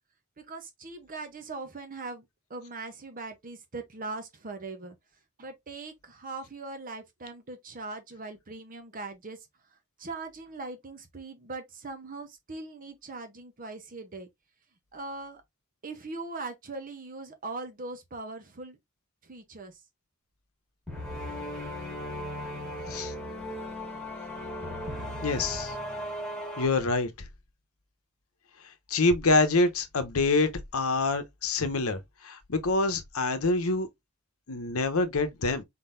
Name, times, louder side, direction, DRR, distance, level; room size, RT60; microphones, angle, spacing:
voice 1, 0.4-2.2 2.5-5.0 5.4-9.4 10.0-14.3 14.9-15.4 15.8-18.8 19.2-19.8, right 3 dB, 40° right, 0.8 m, -40 dB
sound 1, 20.9-26.7, equal, ahead, 2.1 m, -36 dB
voice 2, 25.2-25.7 26.6-27.1 28.9-33.9 34.5-35.6, left 3 dB, 75° left, 0.9 m, -26 dB
4.2 x 3.8 x 2.6 m
head